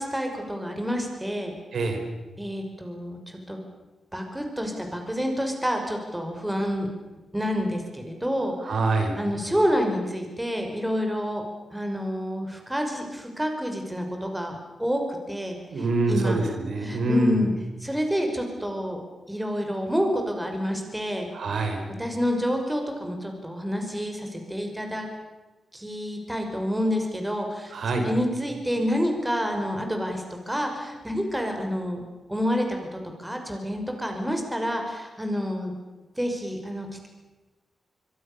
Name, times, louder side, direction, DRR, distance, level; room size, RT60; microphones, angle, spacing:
voice 1, 0.0-1.5 2.4-3.6 4.1-6.9 7.3-8.7 9.2-11.4 11.7-15.0 15.3-15.6 16.1-16.4 16.8-17.5 17.8-19.0 19.3-21.3 22.0-25.1 25.7-32.0 32.3-35.7 36.2-37.1, equal, 10° right, 3 dB, 5.8 m, -28 dB
voice 2, 1.7-2.0 8.6-9.2 15.7-17.5 21.3-21.8 27.7-28.1, right 2 dB, 75° right, 4 dB, 4.9 m, -25 dB
25.0 x 23.5 x 7.0 m, 1.2 s
cardioid pair, 85°, 0 cm